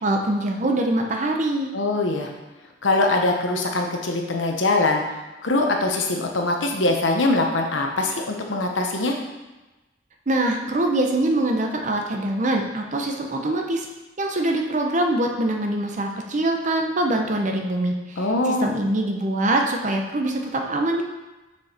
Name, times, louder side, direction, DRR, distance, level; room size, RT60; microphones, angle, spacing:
voice 1, 0.0-1.7 10.3-13.9 14.2-21.0, right 1 dB, 40° right, 2 dB, 0.8 m, -23 dB
voice 2, 1.7-2.3 2.8-5.0 5.4-9.2 18.2-18.7, left 2 dB, 80° left, 2 dB, 1.0 m, -22 dB
6.2 x 4.9 x 4.3 m, 1.1 s
head